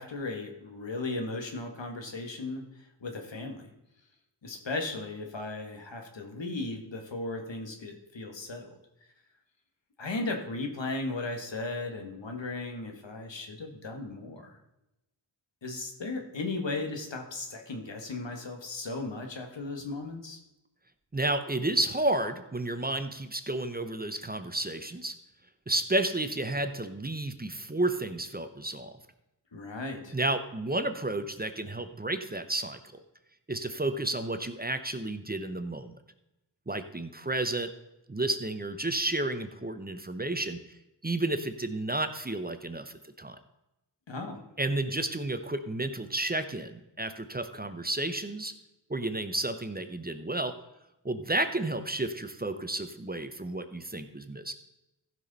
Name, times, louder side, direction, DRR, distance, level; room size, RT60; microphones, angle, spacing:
voice 1, 0.0-3.7 4.4-8.8 10.0-14.6 15.6-20.4 29.5-30.1 44.1-44.4, left 2 dB, 85° left, 4 dB, 1.6 m, -36 dB
voice 2, 21.1-25.1 25.7-29.0 30.1-33.0 33.5-35.9 36.7-37.7 38.1-40.6 41.0-43.4 44.6-48.5 48.9-50.6 51.0-54.5, right 2 dB, 20° right, 9 dB, 0.8 m, -31 dB
15.0 x 6.0 x 4.1 m, 0.93 s
wide cardioid pair, 65°, 43 cm